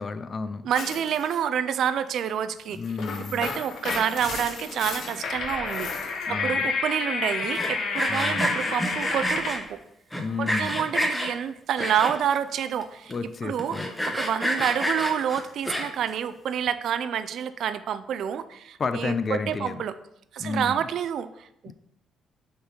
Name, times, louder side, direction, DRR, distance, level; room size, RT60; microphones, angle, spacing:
voice 1, 0.0-0.7 2.7-3.5 6.3-6.7 8.1-8.5 10.1-10.8 13.1-13.9 18.8-19.8 20.4-20.8 21.7-21.8, left 4 dB, 40° left, 12 dB, 0.5 m, -31 dB
voice 2, 0.6-2.8 3.3-5.9 6.3-9.8 10.4-13.1 13.4-13.8 14.1-20.0 20.3-21.7, right 9 dB, 70° right, 12 dB, 0.4 m, -28 dB
sound 1, 0.7-1.4 2.7-9.7, left 4 dB, 70° left, 1.1 m, -31 dB
Sawing, 7.4-9.6 10.1-11.3 11.8-12.4 12.8-12.9 13.1-13.2 13.6-16.1, equal, 10° left, 1.0 m, -28 dB
6.4 x 4.0 x 4.4 m, 0.78 s
cardioid pair, 90°, 0 cm